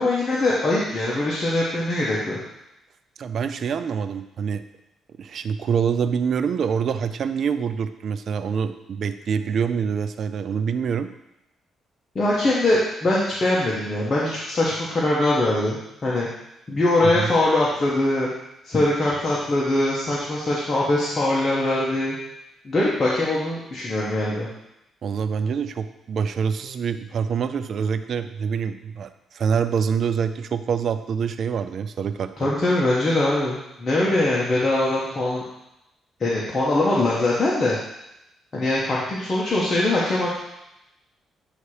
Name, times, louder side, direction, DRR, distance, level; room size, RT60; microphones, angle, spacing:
voice 1, 0.0-2.4 12.1-16.3 16.7-18.3 18.6-22.2 22.6-24.5 32.4-35.4 36.2-37.8 38.5-40.4, left 2 dB, 35° left, -6 dB, 1.2 m, -22 dB
voice 2, 3.2-4.6 5.2-11.1 17.0-17.3 25.0-32.5, right 6 dB, 60° right, 10 dB, 0.4 m, -25 dB
8.0 x 2.9 x 4.8 m, 0.88 s
cardioid pair, 90°, 0 cm